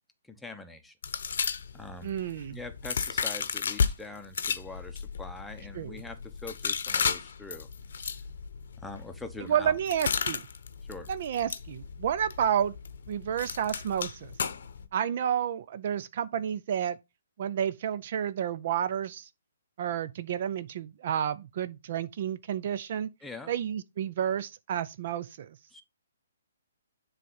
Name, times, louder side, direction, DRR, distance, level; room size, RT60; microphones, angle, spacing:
voice 1, 0.3-0.9 1.7-2.2 2.5-7.7 8.8-9.7 10.8-11.1 23.2-23.5 25.7-25.8, left 2 dB, 5° left, 0.8 m, -43 dB
sound 1, 1.0-3.9 4.3-14.9, left 6 dB, 65° left, 0.7 m, -34 dB
voice 2, 2.0-2.6 5.7-5.9 9.5-10.4 11.1-12.7 13.1-14.3 14.9-17.0 17.4-19.3 19.8-23.1 23.5-25.5, right 9 dB, 50° right, 0.4 m, -30 dB
7.5 x 3.3 x 5.4 m
hypercardioid pair, 145°, 0 cm